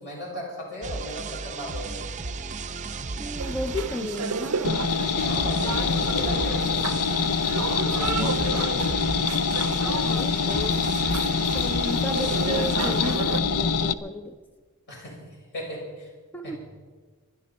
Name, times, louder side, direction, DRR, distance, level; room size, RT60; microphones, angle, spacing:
voice 1, 0.0-2.1 5.2-6.9 7.9-8.9 14.9-15.2 15.5-16.1 16.4-16.5, left 1 dB, 55° left, -3 dB, 6.6 m, -36 dB
sound 1, 0.8-13.2, right 4 dB, 35° right, 0.6 m, -35 dB
voice 2, 3.2-4.8 10.0-10.8 11.5-14.4 16.3-16.6, left 1 dB, 10° left, 6 dB, 0.6 m, -34 dB
sound 2, 3.4-13.4, right 5 dB, 90° right, 0.7 m, -33 dB
sound 3, 4.6-13.9, left 5 dB, 75° left, 0.6 m, -25 dB
26.0 x 11.5 x 4.3 m, 1.4 s
head